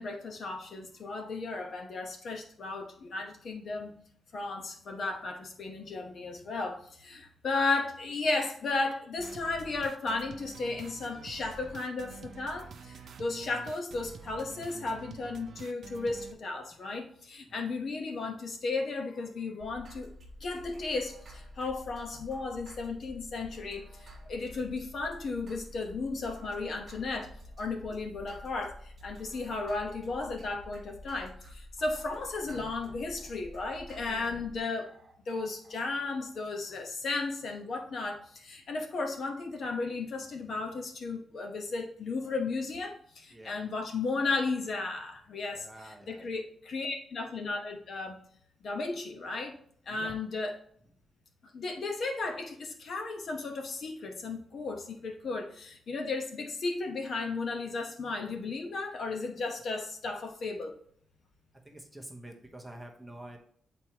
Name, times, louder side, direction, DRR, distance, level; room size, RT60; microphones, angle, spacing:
voice 1, 0.0-4.0 4.3-20.1 20.4-27.3 27.6-34.9 35.3-48.2 48.6-49.5 49.9-50.6 51.5-60.7, left 3 dB, 50° left, 3 dB, 1.0 m, -34 dB
sound 1, 9.2-16.3, right 5 dB, 55° right, 0.6 m, -48 dB
sound 2, 19.6-36.4, left 1 dB, 30° right, 1.5 m, -50 dB
voice 2, 34.0-34.4 43.3-43.6 45.5-46.3 49.9-50.1 61.6-63.4, right 1 dB, 5° right, 1 dB, 0.9 m, -47 dB
8.1 x 4.4 x 2.9 m, 0.62 s
wide cardioid pair, 170°, 0 cm